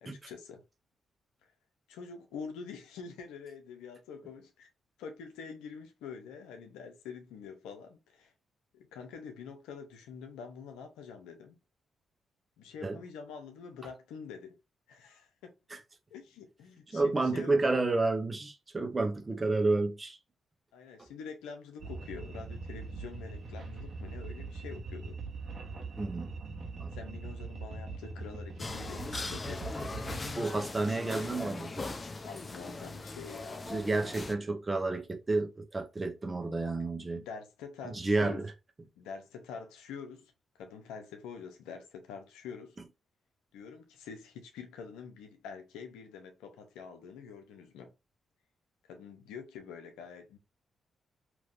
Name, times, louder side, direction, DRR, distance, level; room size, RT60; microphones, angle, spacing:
voice 1, 0.0-0.6 1.4-1.5 1.9-4.7 5.0-8.3 8.7-11.6 12.6-14.6 14.9-15.5 16.1-17.8 20.7-25.2 26.9-29.7 32.2-33.7 36.6-36.7 37.2-38.4 39.0-42.8 43.5-47.9 48.9-50.4, left 6 dB, 90° left, 0.7 m, -46 dB
voice 2, 16.9-20.2 21.0-21.1 26.0-26.3 26.8-26.9 30.3-31.9 33.7-37.2 37.8-38.5, right 3 dB, 30° right, 1.0 m, -30 dB
sound 1, 21.8-30.3, right 3 dB, 55° right, 1.2 m, -41 dB
sound 2, 28.6-34.3, left 3 dB, 35° left, 0.6 m, -39 dB
3.4 x 2.9 x 2.5 m
supercardioid pair, 50°, 0 cm